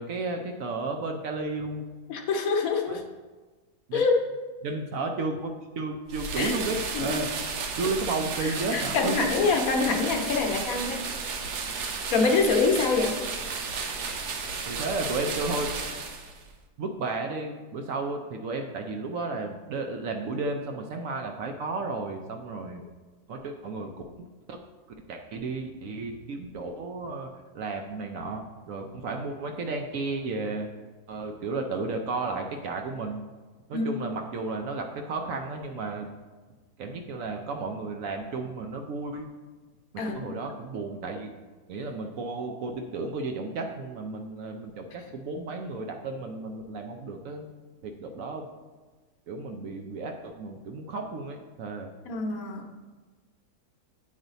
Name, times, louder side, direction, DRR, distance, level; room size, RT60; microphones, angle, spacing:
voice 1, 0.0-1.8 2.9-3.0 3.9-4.0 4.6-5.5 5.8-7.3 7.7-9.2 14.7-15.7 16.8-22.8 23.3-24.6 25.1-27.3 27.5-30.7 31.1-33.2 33.7-36.1 36.8-39.3 39.9-41.3 41.7-47.5 47.8-48.5 49.3-51.9, right 3 dB, 70° right, 4 dB, 0.9 m, -33 dB
voice 2, 2.1-3.0 3.9-4.1 6.4-6.5 6.9-7.2 8.7-11.0 12.1-13.2 33.7-33.9 40.0-40.1 52.1-52.7, left 4 dB, 65° left, 3 dB, 1.1 m, -25 dB
sound 1, 6.1-16.5, right 5 dB, 90° right, 1.2 m, -33 dB
8.9 x 3.2 x 3.9 m, 1.3 s
omnidirectional pair, 1.7 m